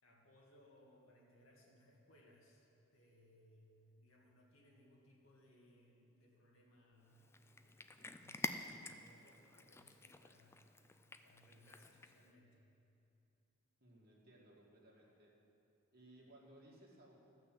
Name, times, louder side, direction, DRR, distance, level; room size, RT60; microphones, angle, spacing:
voice 1, 0.0-12.6 15.0-15.1, left 1 dB, 85° left, -2 dB, 2.2 m, -67 dB
Cat, 7.1-12.3, left 3 dB, 10° left, 0.4 m, -49 dB
voice 2, 13.8-15.3 15.9-17.2, right 1 dB, 50° right, -3 dB, 2.2 m, -62 dB
14.0 x 6.1 x 7.5 m, 2.8 s
head